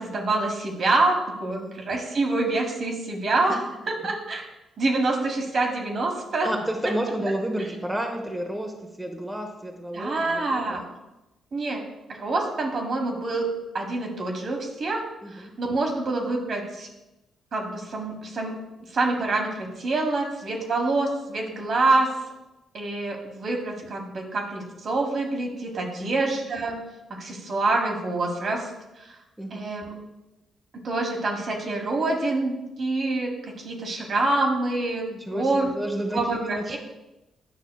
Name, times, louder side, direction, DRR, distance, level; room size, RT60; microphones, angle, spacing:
voice 1, 0.0-3.6 3.9-4.4 4.8-6.5 9.9-10.8 11.5-11.8 12.1-13.5 13.7-15.0 15.3-16.9 17.5-18.5 18.9-22.1 22.7-26.8 27.1-28.7 29.1-29.2 29.5-30.0 30.8-35.0 35.3-35.7 36.1-36.8, right 2 dB, 55° right, 2 dB, 1.4 m, -26 dB
voice 2, 6.4-10.9 15.2-15.5 26.0-26.1 29.4-29.6 35.1-36.8, right 1 dB, 10° right, 2 dB, 0.8 m, -31 dB
9.2 x 5.6 x 2.3 m, 0.98 s
cardioid pair, 90°, 0 cm